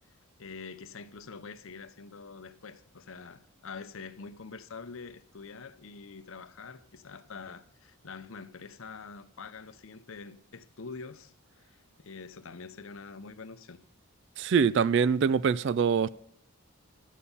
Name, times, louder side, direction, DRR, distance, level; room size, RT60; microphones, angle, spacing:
voice 1, 0.4-13.8, left 4 dB, 65° left, 0.7 m, -45 dB
voice 2, 14.4-16.1, right 6 dB, 55° right, 0.3 m, -24 dB
12.0 x 8.3 x 5.5 m
head